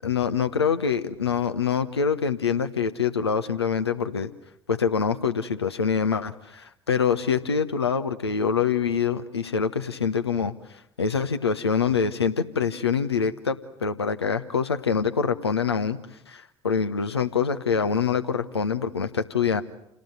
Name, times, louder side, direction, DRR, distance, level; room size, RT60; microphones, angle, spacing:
voice 1, 0.0-4.3 4.7-10.5 11.0-16.0 16.3-19.6, left 6 dB, 85° left, 9 dB, 1.1 m, -25 dB
29.0 x 18.5 x 9.4 m, 0.78 s
figure-of-eight pair, 55°, 13 cm